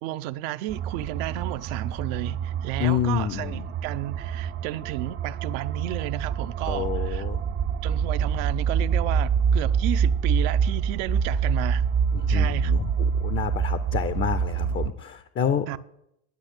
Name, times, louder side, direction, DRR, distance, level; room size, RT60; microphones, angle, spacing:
voice 1, 0.0-7.3 7.8-11.9 12.3-12.7 15.7-15.8, right 15 dB, 65° right, 0.7 m, -32 dB
sound 1, 0.7-14.9, right 6 dB, 30° right, 0.5 m, -26 dB
voice 2, 2.8-3.6 6.7-7.4 12.3-12.9 13.2-15.7, left 8 dB, 30° left, 0.6 m, -28 dB
10.5 x 5.8 x 8.2 m
supercardioid pair, 105°, 42 cm